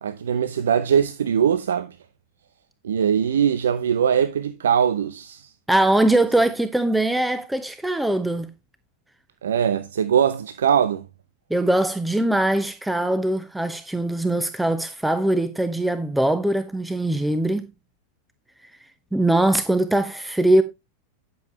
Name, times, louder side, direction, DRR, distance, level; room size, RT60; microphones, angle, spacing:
voice 1, 0.0-2.0 2.8-5.5 9.4-11.0, right 8 dB, 75° right, 0.7 m, -21 dB
voice 2, 5.7-8.5 11.5-17.7 19.1-20.6, right 1 dB, 5° right, 0.9 m, -21 dB
12.0 x 7.0 x 3.1 m
hypercardioid pair, 95°, 0 cm